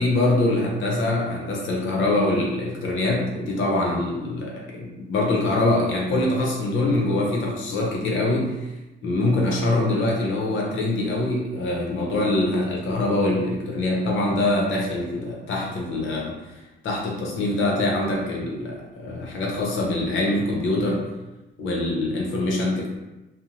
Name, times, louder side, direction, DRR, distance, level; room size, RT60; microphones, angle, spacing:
voice 1, 0.0-8.7 9.0-16.3 16.8-21.1 21.6-22.9, left 2 dB, 75° left, -2 dB, 0.8 m, -24 dB
2.6 x 2.1 x 2.8 m, 1.0 s
cardioid pair, 90°, 20 cm